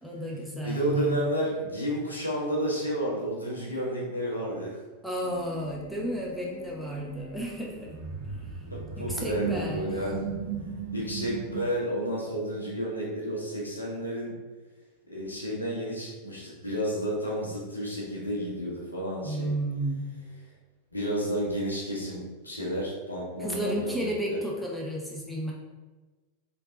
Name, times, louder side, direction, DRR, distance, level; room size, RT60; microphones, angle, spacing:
voice 1, 0.0-1.2 5.0-8.0 8.3-8.4 9.0-9.9 19.2-20.0 23.4-25.5, right 1 dB, ahead, -3 dB, 0.8 m, -32 dB
voice 2, 0.6-4.8 8.7-10.3 10.6-14.4 15.0-19.5 20.9-24.4, equal, 80° left, -4 dB, 0.9 m, -31 dB
sound 1, 5.2-11.6, right 6 dB, 55° right, 0.6 m, -37 dB
3.4 x 3.1 x 2.7 m, 1.2 s
figure-of-eight pair, 90°, 0 cm